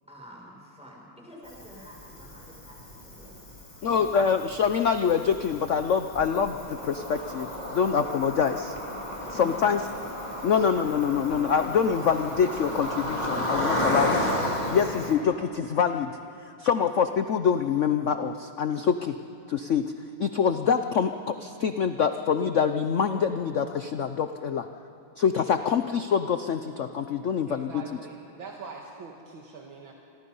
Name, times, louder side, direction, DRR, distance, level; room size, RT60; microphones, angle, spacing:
voice 1, 0.1-3.5 3.8-4.1 9.2-9.8, equal, 5° right, -3 dB, 6.3 m, -47 dB
Cricket, 1.5-15.1, left 1 dB, 20° left, 3.1 m, -33 dB
voice 2, 3.8-8.7 9.3-9.8 10.4-14.3 14.7-16.2 16.6-19.1 19.5-19.8 20.2-24.7 25.2-27.8, left 7 dB, 85° left, 8 dB, 0.6 m, -25 dB
voice 3, 27.5-29.9, right 4 dB, 75° right, 0 dB, 2.3 m, -43 dB
28.5 x 22.0 x 5.5 m, 2.9 s
omnidirectional pair, 2.2 m